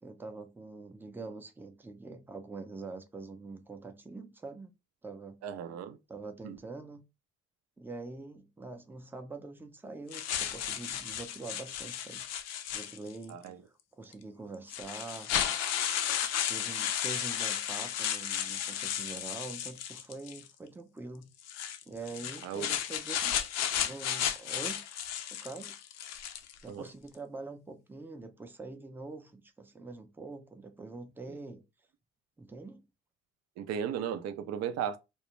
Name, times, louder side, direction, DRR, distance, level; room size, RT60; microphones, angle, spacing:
voice 1, 0.0-4.7 5.0-5.4 6.1-7.0 7.8-12.2 12.7-13.4 14.0-15.3 16.5-21.3 21.9-23.4 23.8-24.8 25.3-25.7 26.6-31.6 32.4-32.8, right 3 dB, 5° right, 0.5 m, -44 dB
voice 2, 5.4-6.0 6.4-6.6 13.3-13.6 22.4-22.7 26.7-26.8 33.6-35.0, right 8 dB, 55° right, 0.5 m, -35 dB
sound 1, 10.1-13.3 14.1-14.2 14.7-20.5 21.4-26.6, left 10 dB, 55° left, 0.5 m, -34 dB
2.3 x 2.1 x 2.9 m
hypercardioid pair, 60°, 31 cm